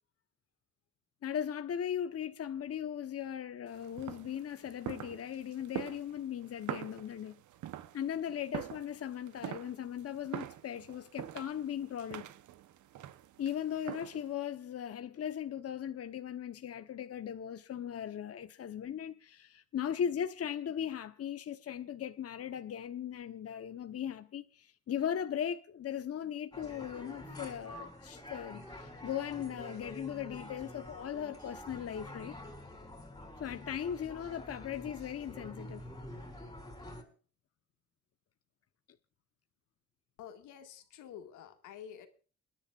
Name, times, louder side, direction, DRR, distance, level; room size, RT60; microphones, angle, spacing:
voice 1, 1.2-7.4 7.9-12.3 13.4-32.4 33.4-35.8, left 9 dB, 50° left, 1.1 m, -38 dB
sound 1, 3.7-14.3, right 12 dB, 75° right, 1.0 m, -45 dB
sound 2, 26.5-37.0, left 1 dB, 15° left, 4.0 m, -47 dB
voice 2, 40.2-42.1, left 9 dB, 90° left, 2.1 m, -49 dB
28.5 x 10.5 x 2.5 m
cardioid pair, 90°, 30 cm